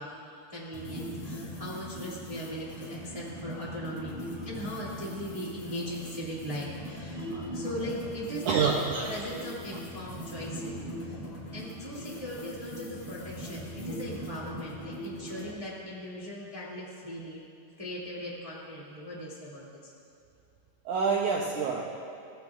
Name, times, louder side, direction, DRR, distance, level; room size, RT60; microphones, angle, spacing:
voice 1, 0.0-8.6 9.0-11.2 11.5-17.4 17.8-19.9, equal, 20° right, -6 dB, 0.8 m, -39 dB
sound 1, 0.7-15.5, equal, 55° left, 3.4 m, -40 dB
voice 2, 7.3-7.6 8.5-9.1 20.9-21.8, right 5 dB, 80° right, 0 dB, 1.7 m, -27 dB
16.5 x 15.0 x 2.4 m, 2.6 s
omnidirectional pair, 4.4 m